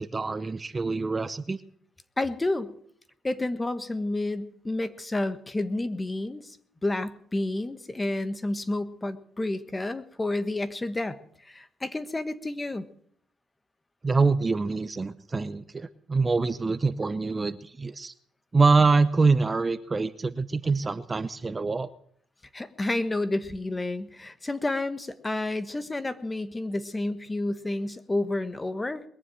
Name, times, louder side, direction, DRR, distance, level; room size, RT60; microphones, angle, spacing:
voice 1, 0.0-1.6 14.0-18.1 18.5-21.9, right 4 dB, 25° right, 12 dB, 0.7 m, -25 dB
voice 2, 2.2-2.7 3.2-6.6 6.8-12.9 22.5-29.0, left 2 dB, 20° left, 12 dB, 1.3 m, -30 dB
21.5 x 7.3 x 8.8 m, 0.65 s
cardioid pair, 90°, 0 cm